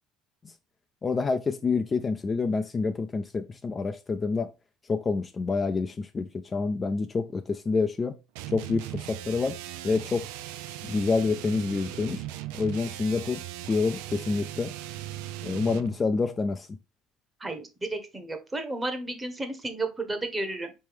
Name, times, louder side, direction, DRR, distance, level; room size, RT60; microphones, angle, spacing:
voice 1, 1.0-4.5 4.9-8.1 8.5-9.6 9.8-10.2 10.8-12.2 12.5-13.4 13.7-14.7 15.4-16.7, left 4 dB, 25° left, 0.4 m, -27 dB
sound 1, 8.3-16.0, right 13 dB, 90° right, 0.3 m, -38 dB
voice 2, 17.4-20.7, right 2 dB, 15° right, 1.0 m, -32 dB
4.3 x 3.2 x 3.4 m
cardioid pair, 110°, 0 cm